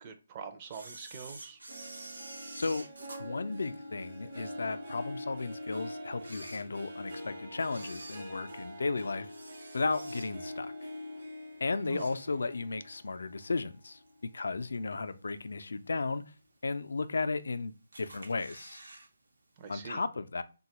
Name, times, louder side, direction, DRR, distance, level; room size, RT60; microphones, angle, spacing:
voice 1, 0.0-1.6 11.9-12.1 19.6-20.0, right 6 dB, 25° right, 0.4 m, -44 dB
Camera, 0.7-4.3 4.8-4.9 5.6-5.7 6.1-7.2 7.6-10.6 11.0-11.3 11.6-12.7 13.0-13.1 14.1-14.2 14.7-15.1 15.6-15.7 15.9-16.0 16.1-16.2 17.0-17.5 17.9-19.1 19.3-19.4 19.7-19.8, right 2 dB, 85° right, 0.7 m, -49 dB
Harp, 1.7-14.4 14.8-15.2 15.7-15.8, left 1 dB, 50° right, 0.8 m, -44 dB
voice 2, 2.5-2.9 3.2-9.3 9.7-10.7 11.6-16.2 16.6-18.8 19.7-20.4, left 3 dB, 75° left, 0.3 m, -34 dB
3.1 x 2.2 x 2.8 m
hypercardioid pair, 160°, 0 cm